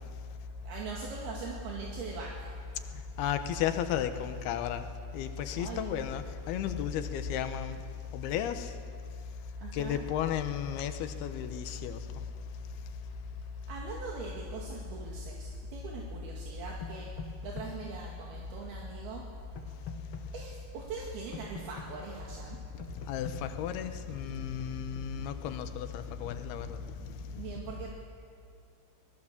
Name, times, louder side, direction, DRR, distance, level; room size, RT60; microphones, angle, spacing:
voice 1, 0.6-2.5 5.6-5.8 9.6-10.0 13.7-19.2 19.6-19.7 20.3-22.6 27.0-27.9, right 4 dB, 70° right, 3.9 m, -41 dB
voice 2, 3.2-4.8 5.1-7.8 8.1-8.7 9.7-12.0 23.1-26.8 27.1-27.2, left 9 dB, 75° left, 3.0 m, -33 dB
sound 1, 16.8-17.7 19.6-20.2 21.3-21.9 22.8-23.4, left 6 dB, 45° left, 1.7 m, -42 dB
27.0 x 19.5 x 7.4 m
omnidirectional pair, 4.8 m